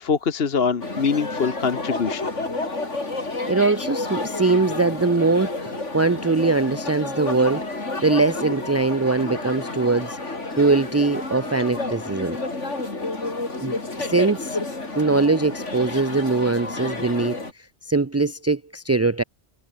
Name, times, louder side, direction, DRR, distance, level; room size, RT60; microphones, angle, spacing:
voice 1, 0.0-2.3, left 5 dB, 55° left, 1.5 m, -23 dB
sound 1, 0.8-17.5, left 2 dB, 80° left, 4.3 m, -30 dB
voice 2, 3.5-10.2 10.6-12.4 13.6-14.6 15.0-17.4 17.9-19.2, right 3 dB, 20° right, 0.4 m, -22 dB
omnidirectional pair, 1.2 m